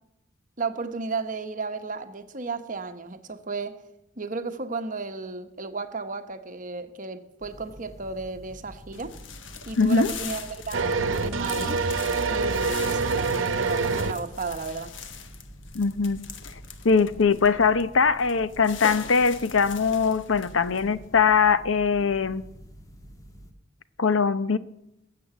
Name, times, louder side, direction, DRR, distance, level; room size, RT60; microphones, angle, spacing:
voice 1, 0.6-3.8 4.2-9.1 9.7-11.8 12.3-14.9, right 4 dB, 40° right, 1.1 m, -34 dB
sound 1, 7.4-23.5, equal, 20° left, 1.4 m, -47 dB
sound 2, 8.9-21.2, left 6 dB, 65° left, 1.2 m, -42 dB
voice 2, 9.8-10.1 15.7-16.2 16.8-22.4 24.0-24.6, left 5 dB, 80° left, 0.8 m, -21 dB
sound 3, 10.7-14.1, right 4 dB, 80° right, 0.9 m, -25 dB
20.0 x 7.8 x 8.1 m
head